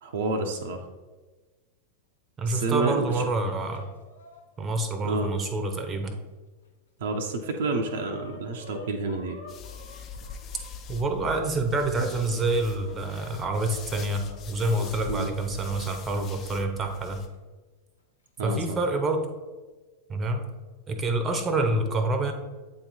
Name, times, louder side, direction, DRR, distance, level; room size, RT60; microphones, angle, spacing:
voice 1, 0.0-0.8 2.5-3.3 5.0-5.3 7.0-9.4 15.1-15.3 18.4-18.8, right 3 dB, 60° right, 3 dB, 0.6 m, -29 dB
voice 2, 2.4-3.8 4.6-6.2 10.9-17.2 18.4-19.3 20.1-20.5 20.9-22.3, right 2 dB, 20° right, 6 dB, 0.7 m, -27 dB
Chicken rooster, 2.7-6.1 6.6-6.7 7.0-11.0 11.7-14.9 16.2-16.3 17.3-17.4 18.3-18.7, left 3 dB, 75° left, 0.9 m, -50 dB
sound 1, 9.5-17.3, left 6 dB, 30° left, 0.5 m, -43 dB
8.3 x 3.0 x 4.0 m, 1.3 s
figure-of-eight pair, 90°, 0 cm